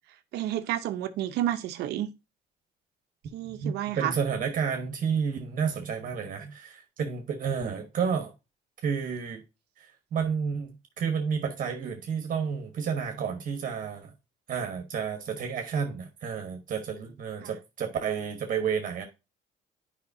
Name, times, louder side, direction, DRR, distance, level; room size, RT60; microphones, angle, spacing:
voice 1, 0.3-2.1 3.3-4.2 17.4-17.5, right 12 dB, 80° right, 0.8 m, -30 dB
voice 2, 3.4-8.3 8.8-9.4 9.8-14.1 14.5-19.0, right 6 dB, 55° right, 1.3 m, -31 dB
9.7 x 5.1 x 2.7 m
cardioid pair, 110°, 17 cm